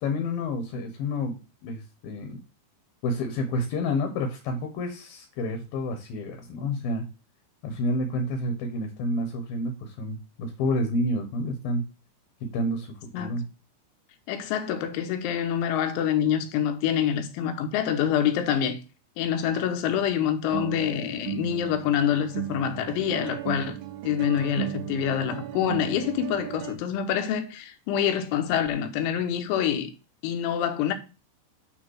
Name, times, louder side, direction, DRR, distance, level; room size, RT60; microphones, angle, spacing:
voice 1, 0.0-2.4 3.0-7.0 7.6-11.8 12.4-13.4, left 1 dB, 65° left, 2.5 m, -29 dB
voice 2, 14.3-18.8 19.2-23.8 24.0-29.9 30.2-30.9, left 9 dB, 80° left, 3.3 m, -26 dB
sound 1, 19.6-19.7 20.5-26.7, right 14 dB, 85° right, 3.1 m, -36 dB
8.9 x 3.5 x 6.4 m
omnidirectional pair, 5.4 m